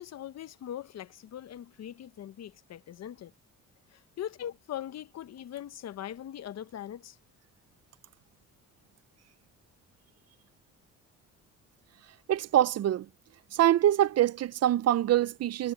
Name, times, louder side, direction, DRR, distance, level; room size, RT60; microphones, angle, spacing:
voice 1, 0.0-3.3 3.9-7.2, left 11 dB, 60° left, 0.9 m, -41 dB
voice 2, 12.3-13.1 13.5-15.7, right 12 dB, 55° right, 0.6 m, -24 dB
cardioid pair, 90°, 30 cm